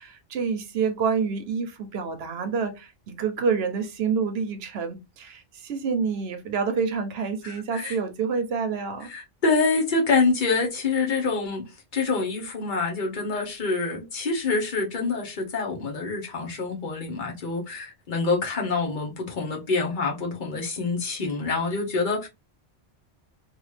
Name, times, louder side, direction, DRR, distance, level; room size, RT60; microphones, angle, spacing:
voice 1, 0.0-9.1, right 5 dB, 70° right, 0.8 m, -28 dB
voice 2, 7.4-8.0 9.1-11.6 11.9-22.3, left 4 dB, 50° left, 1.0 m, -26 dB
2.9 x 2.4 x 3.1 m
omnidirectional pair, 1.1 m